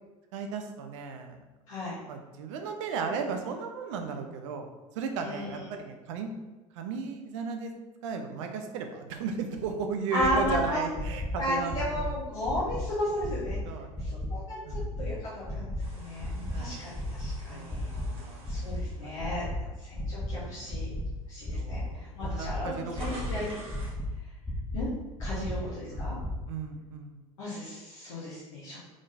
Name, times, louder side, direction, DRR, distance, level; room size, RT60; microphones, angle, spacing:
voice 1, 0.3-1.4 2.1-4.7 4.9-6.3 6.7-7.7 8.0-11.9 13.6-14.1 14.7-14.9 16.2-16.9 17.5-19.6 20.3-20.7 21.5-23.6 25.3-27.2, right 5 dB, 55° right, 5 dB, 0.5 m, -36 dB
voice 2, 1.7-2.0 5.2-5.6 10.1-10.8 11.4-13.6 14.0-16.9 17.2-17.8 18.5-19.5 19.8-20.9 21.3-21.8 22.2-23.6 24.7-24.9 25.2-26.2 27.4-28.9, left 1 dB, 60° left, -10 dB, 1.1 m, -34 dB
sound 1, 10.2-10.5 10.9-11.3 11.7-12.0 12.4-12.8 13.2-13.5 13.9-14.3 14.7-15.0 15.4-15.8 16.2-16.5 16.9-17.3 17.7-18.0 18.4-18.8 19.2-19.5 19.9-20.3 20.7-21.0 21.4-21.8 22.2-22.6 22.9-23.3 23.7-24.1 24.4-24.8 25.2-25.5 25.9-26.3, equal, 10° left, 0.7 m, -34 dB
sound 2, 15.8-20.0 20.6-20.8 21.7-21.8 22.0-24.0, right 1 dB, 30° right, 1.4 m, -48 dB
3.7 x 3.7 x 2.5 m, 1.2 s
figure-of-eight pair, 70°, 19 cm